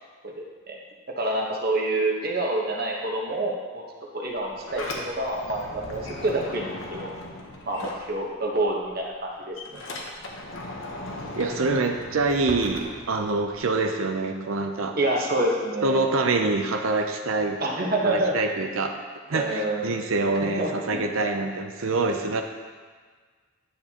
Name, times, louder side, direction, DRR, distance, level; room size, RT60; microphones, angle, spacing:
voice 1, 1.2-3.8 4.1-7.1 7.7-9.8 15.0-16.1 17.6-18.5 19.3-19.9 20.4-21.0, right 1 dB, 45° right, -1 dB, 1.1 m, -27 dB
Sliding door, 4.3-8.6 8.9-13.7, left 2 dB, 65° left, 1.0 m, -38 dB
voice 2, 11.4-14.9 15.8-17.6 18.0-18.9 19.3-22.4, right 3 dB, 75° right, 4 dB, 0.6 m, -25 dB
10.0 x 7.0 x 2.9 m, 1.5 s
head